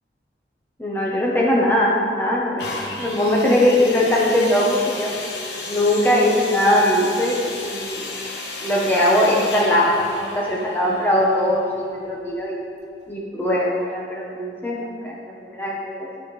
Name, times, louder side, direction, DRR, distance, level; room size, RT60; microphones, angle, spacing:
voice 1, 0.8-2.7 3.0-5.1 5.7-8.0 8.6-12.6 13.1-16.1, left 1 dB, 10° left, -4 dB, 0.9 m, -20 dB
sound 1, 2.6-12.3 13.0-13.1, left 2 dB, 80° left, 1.2 m, -33 dB
12.5 x 5.7 x 3.2 m, 2.3 s
head